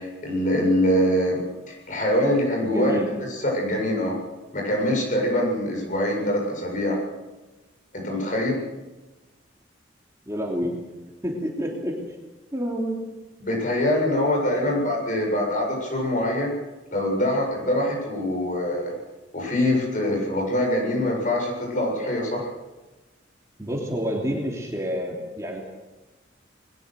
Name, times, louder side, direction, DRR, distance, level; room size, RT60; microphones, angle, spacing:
voice 1, 0.0-2.9 3.3-4.1 4.5-7.0 7.9-8.6 13.4-16.5 16.9-18.9 19.3-22.5, left 1 dB, 45° left, 0 dB, 7.6 m, -24 dB
voice 2, 2.6-3.1 10.3-10.7 11.2-11.9 12.5-13.0 14.5-14.8 23.6-25.6, equal, 15° right, -1 dB, 3.1 m, -28 dB
21.5 x 20.0 x 6.5 m, 1.1 s
head